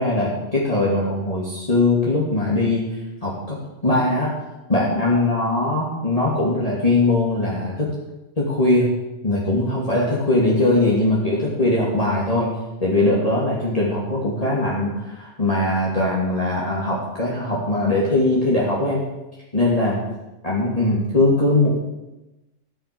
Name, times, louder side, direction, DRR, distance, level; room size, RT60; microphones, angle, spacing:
voice 1, 0.0-2.9 3.2-3.6 3.8-4.3 4.7-7.9 8.4-8.9 9.2-12.5 12.8-19.0 19.5-20.0 20.4-21.8, left 2 dB, 25° left, -6 dB, 2.9 m, -20 dB
15.0 x 10.5 x 6.9 m, 1.0 s
omnidirectional pair, 1.4 m